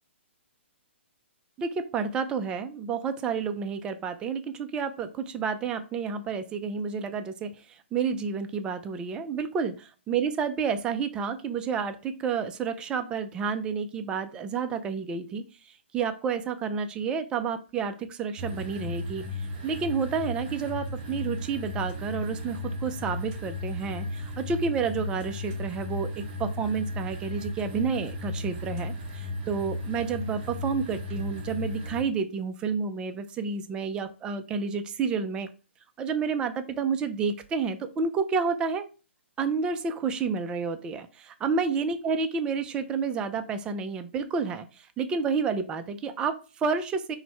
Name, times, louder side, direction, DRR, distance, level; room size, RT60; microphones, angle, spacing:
voice 1, 1.6-9.7 10.1-35.5 36.0-38.9 39.4-47.2, right 5 dB, 15° right, 9 dB, 0.3 m, -30 dB
sound 1, 18.4-32.0, left 2 dB, 40° right, 1.0 m, -35 dB
4.4 x 2.1 x 4.3 m, 0.33 s
hypercardioid pair, 150°, 7 cm